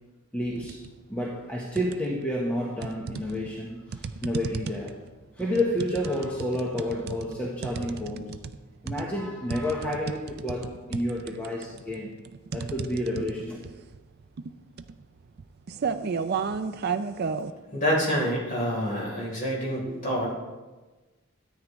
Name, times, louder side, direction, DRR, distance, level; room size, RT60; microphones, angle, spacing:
voice 1, 0.3-0.8 1.1-5.0 5.4-8.3 8.8-12.1 12.5-13.7 19.9-20.0, left 1 dB, 5° left, -4 dB, 0.9 m, -30 dB
sound 1, 0.6-0.9 1.3-2.3 2.8-17.5, right 5 dB, 45° right, 0.4 m, -34 dB
voice 2, 17.7-20.3, equal, 35° left, -4 dB, 3.5 m, -27 dB
13.5 x 9.2 x 3.1 m, 1.2 s
head